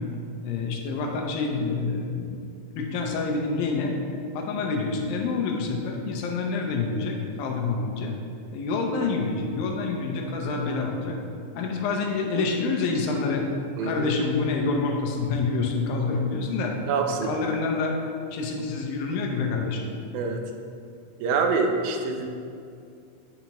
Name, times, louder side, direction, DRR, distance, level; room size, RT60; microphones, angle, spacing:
voice 1, 0.4-2.4 2.7-3.9 4.3-8.1 8.5-11.2 11.5-13.5 13.8-16.7 17.1-18.0 18.3-19.9, left 4 dB, 80° left, 1 dB, 2.5 m, -27 dB
voice 2, 13.8-14.1 16.8-17.3 20.1-20.4 21.2-22.3, right 4 dB, 85° right, 4 dB, 2.5 m, -25 dB
8.1 x 5.7 x 2.9 m, 2.4 s
omnidirectional pair, 4.1 m